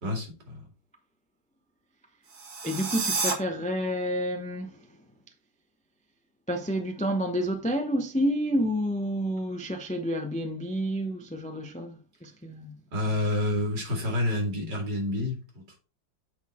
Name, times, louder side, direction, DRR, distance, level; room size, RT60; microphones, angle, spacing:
voice 1, 0.0-0.6 12.9-15.8, left 1 dB, 75° right, 3.2 m, -29 dB
sound 1, 2.3-3.3, right 4 dB, 50° right, 1.7 m, -29 dB
voice 2, 2.6-5.1 6.5-12.8, equal, 10° left, 0.3 m, -29 dB
8.0 x 4.0 x 4.3 m
omnidirectional pair, 1.9 m